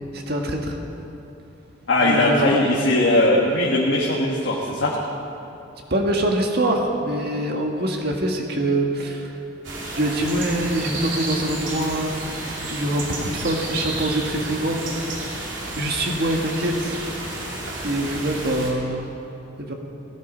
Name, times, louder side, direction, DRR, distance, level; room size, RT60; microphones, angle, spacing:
voice 1, 0.1-0.8 2.0-2.6 5.9-9.3 9.9-12.1 12.7-14.9 15.7-17.0 17.8-19.1 19.6-19.7, right 1 dB, 60° right, 1 dB, 1.6 m, -24 dB
voice 2, 1.9-4.9, left 1 dB, 70° left, -4 dB, 1.6 m, -19 dB
sound 1, 9.6-18.7, right 2 dB, 85° right, 2.8 m, -31 dB
18.0 x 11.0 x 5.2 m, 2.9 s
head